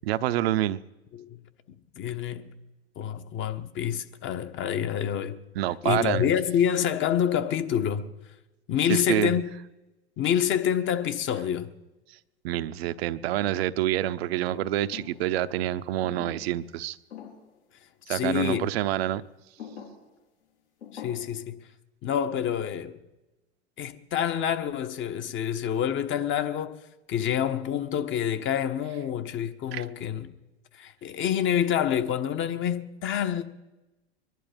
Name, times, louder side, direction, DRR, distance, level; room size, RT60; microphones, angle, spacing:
voice 1, 0.0-0.8 5.5-6.3 8.9-9.3 12.4-17.0 18.1-19.2 29.7-29.9, right 13 dB, 60° right, 0.8 m, -27 dB
voice 2, 2.0-2.6 3.0-5.4 5.8-8.1 8.7-9.4 10.2-11.7 18.1-18.7 20.9-21.6 22.0-23.0 23.8-26.8 27.1-30.3 30.8-33.4, left 9 dB, 35° left, 1.3 m, -27 dB
sound 1, 14.9-15.3 16.0-16.7 17.1-17.5 18.4-18.7 19.6-20.0 20.8-21.2, left 8 dB, 75° left, 4.9 m, -43 dB
23.5 x 11.0 x 5.2 m
hypercardioid pair, 100°, 35 cm